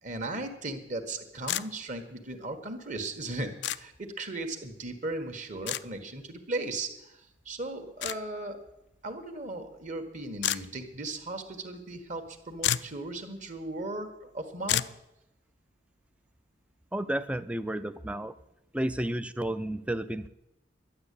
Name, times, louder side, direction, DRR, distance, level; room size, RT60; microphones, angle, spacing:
voice 1, 0.0-8.6 9.0-14.8, right 2 dB, 40° right, 6 dB, 1.6 m, -37 dB
sound 1, 1.5-1.7 3.6-3.8 5.7-5.8 8.0-8.2 10.4-10.6 12.3-12.4 12.6-13.0 14.7-15.0, left 12 dB, 65° left, 0.4 m, -29 dB
voice 2, 16.9-18.3 18.7-20.3, right 1 dB, 5° right, 12 dB, 0.5 m, -31 dB
12.0 x 9.6 x 8.4 m, 0.86 s
head